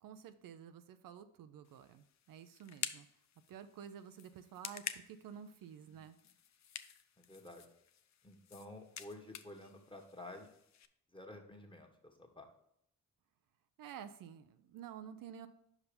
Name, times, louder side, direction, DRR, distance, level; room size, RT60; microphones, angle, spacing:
voice 1, 0.0-3.1 3.5-6.2 13.8-15.5, right 8 dB, 75° right, 10 dB, 0.5 m, -51 dB
sound 1, 1.6-10.9, left 9 dB, 55° left, 0.6 m, -49 dB
voice 2, 7.2-7.7 8.2-10.5 11.1-12.5, left 2 dB, 15° left, 3 dB, 1.5 m, -52 dB
5.4 x 4.9 x 5.1 m, 0.74 s
supercardioid pair, 50°, 34 cm